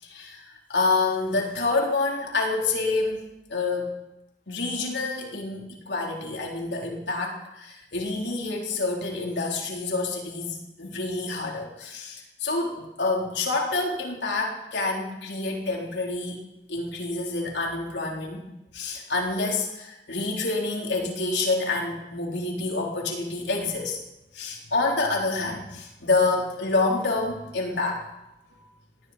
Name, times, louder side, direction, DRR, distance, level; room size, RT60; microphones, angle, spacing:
voice 1, 0.0-3.2 3.5-3.9 4.5-16.4 16.7-18.4 18.7-24.0 24.3-28.1, left 3 dB, 85° left, 0 dB, 3.7 m, -27 dB
18.5 x 17.5 x 4.4 m, 0.92 s
head